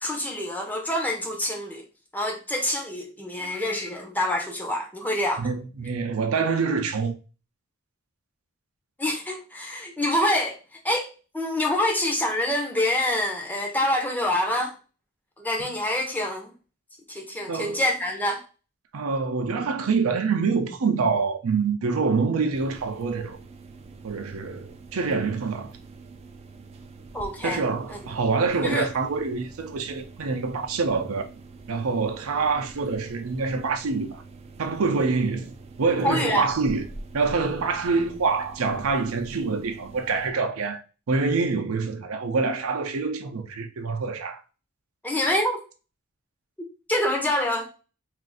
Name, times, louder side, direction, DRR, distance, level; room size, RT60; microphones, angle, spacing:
voice 1, 0.0-1.8 2.1-5.5 9.0-10.6 10.8-14.7 15.4-16.5 17.1-18.4 27.1-27.6 27.9-28.0 28.6-28.9 36.0-36.5 45.0-45.6 46.9-47.7, left 1 dB, 10° left, 0.6 m, -26 dB
voice 2, 5.4-7.1 17.5-17.8 18.9-23.4 24.0-25.7 27.4-31.3 31.7-34.2 34.6-36.8 37.1-40.8 41.1-44.4, right 4 dB, 80° right, 0.5 m, -26 dB
sound 1, 22.5-40.3, right 3 dB, 30° right, 0.3 m, -45 dB
2.5 x 2.5 x 3.8 m
head